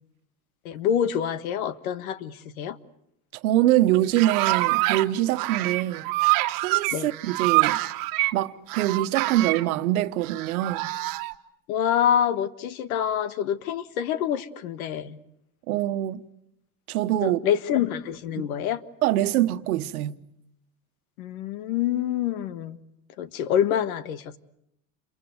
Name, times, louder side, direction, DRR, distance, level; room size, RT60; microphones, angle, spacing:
voice 1, 0.6-2.8 6.9-7.1 11.7-15.2 17.2-18.8 21.2-22.8 23.2-24.4, left 9 dB, 80° left, 1.6 m, -26 dB
voice 2, 3.4-6.1 6.6-7.8 8.3-10.9 15.7-16.2 16.9-17.4 18.4-18.5 19.0-20.2, right 14 dB, 90° right, 1.3 m, -24 dB
sound 1, 3.9-5.1 5.3-8.3 8.7-9.7 10.2-11.3, right 21 dB, 50° right, 1.5 m, -25 dB
28.5 x 23.5 x 8.0 m
supercardioid pair, 130°, 42 cm